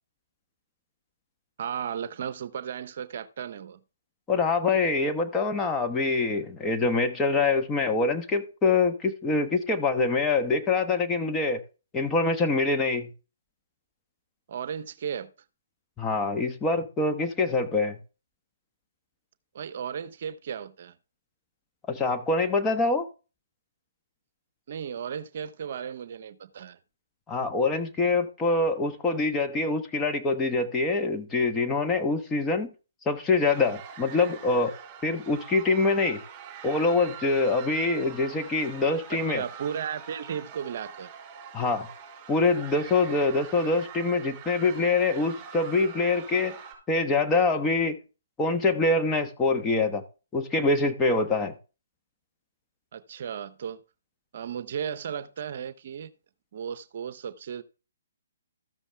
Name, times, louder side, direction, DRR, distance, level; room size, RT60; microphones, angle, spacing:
voice 1, 1.6-3.8 14.5-15.3 19.5-20.9 24.7-26.8 39.3-41.1 52.9-53.8 54.3-56.1 56.5-57.6, right 8 dB, 55° right, 0.8 m, -35 dB
voice 2, 4.3-11.6 11.9-13.1 16.0-18.0 21.9-23.1 27.3-32.7 33.0-34.7 35.0-36.2 36.6-39.4 41.5-41.9 42.3-46.6 46.9-48.0 48.4-50.0 50.3-51.5, left 3 dB, 15° left, 1.1 m, -25 dB
sound 1, 33.4-46.7, right 7 dB, 25° right, 5.4 m, -44 dB
13.5 x 7.1 x 3.4 m
hypercardioid pair, 140°, 0 cm